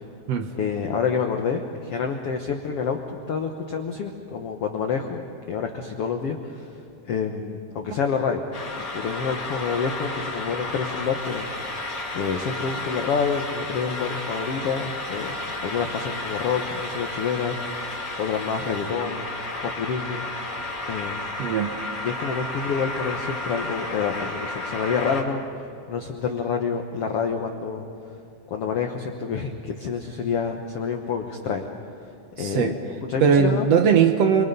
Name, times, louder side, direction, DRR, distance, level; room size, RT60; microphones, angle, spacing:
voice 1, 0.5-3.0 3.3-6.8 7.1-8.4 8.8-11.9 12.1-17.6 18.2-19.2 19.6-20.2 20.9-21.3 22.0-25.4 25.9-27.8 28.5-31.7 32.4-33.8, left 6 dB, 80° left, 4 dB, 1.3 m, -28 dB
sound 1, 8.5-25.2, left 2 dB, 30° left, 3.2 m, -32 dB
voice 2, 21.4-21.7 32.4-32.7 33.2-34.4, right 7 dB, 75° right, 7 dB, 1.4 m, -19 dB
29.0 x 23.5 x 5.4 m, 2.6 s
omnidirectional pair, 4.3 m